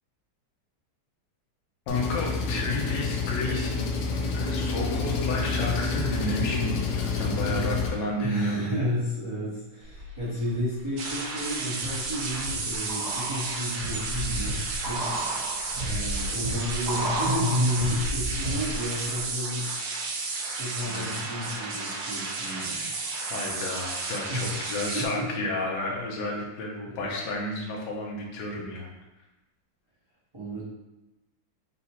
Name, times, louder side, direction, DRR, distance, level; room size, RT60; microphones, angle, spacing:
Engine, 1.9-7.9, left 4 dB, 90° left, 0.8 m, -28 dB
voice 1, 1.9-3.9 4.3-8.8 20.8-21.1 22.6-22.9 23.3-28.9, left 2 dB, 65° left, -1 dB, 1.3 m, -31 dB
voice 2, 7.3-7.7 8.2-22.8 24.3-25.3 26.8-27.2 30.3-30.6, left 1 dB, 20° right, -10 dB, 0.7 m, -32 dB
sound 1, 9.9-10.6 11.1-18.9 19.2-19.3, right 1 dB, 40° right, 1.5 m, -33 dB
sound 2, 11.0-25.1, right 3 dB, 80° right, 1.5 m, -33 dB
3.9 x 2.3 x 4.2 m, 1.0 s
omnidirectional pair, 2.3 m